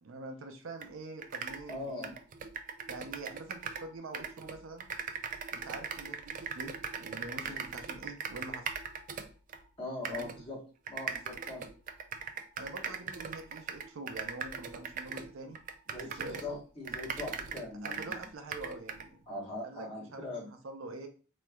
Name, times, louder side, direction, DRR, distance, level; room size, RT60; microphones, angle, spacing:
voice 1, 0.0-2.2 2.9-4.9 5.5-8.7 10.1-10.3 12.6-15.6 15.9-16.6 17.8-19.2 19.6-21.1, right 2 dB, 85° right, 5 dB, 0.6 m, -45 dB
sound 1, 0.8-0.9 1.2-3.9 4.1-9.6 10.0-10.4 10.9-16.5 16.8-19.1, right 6 dB, 40° right, 0.3 m, -39 dB
voice 2, 1.7-2.1 7.4-7.6 9.8-10.6 10.9-11.7 15.9-18.2 19.3-20.5, left 2 dB, 25° left, -4 dB, 1.2 m, -41 dB
3.2 x 3.0 x 2.3 m, 0.36 s
head